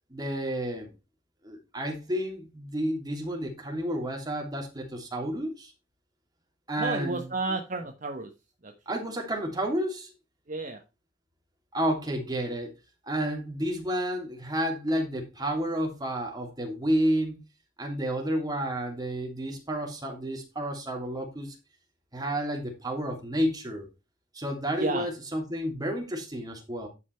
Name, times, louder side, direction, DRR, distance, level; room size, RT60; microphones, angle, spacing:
voice 1, 0.1-0.9 1.4-5.7 6.7-7.3 8.9-10.1 11.7-12.7 13.0-17.4 17.8-21.5 22.1-23.9 24.3-26.9, equal, 20° right, 2.8 m, -30 dB
voice 2, 6.8-8.3 8.6-8.7 10.5-10.8 24.8-25.1, right 3 dB, 45° right, 1.2 m, -31 dB
11.0 x 5.7 x 4.5 m
head